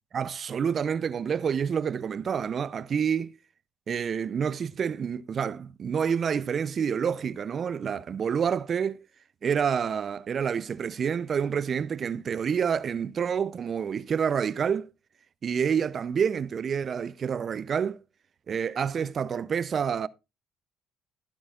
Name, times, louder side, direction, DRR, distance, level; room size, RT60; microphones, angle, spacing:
voice 1, 0.1-3.4 3.9-9.0 9.4-14.9 15.4-18.0 18.5-20.1, right 7 dB, 50° right, 0.5 m, -28 dB
15.0 x 10.0 x 2.4 m
hypercardioid pair, 60°, 0 cm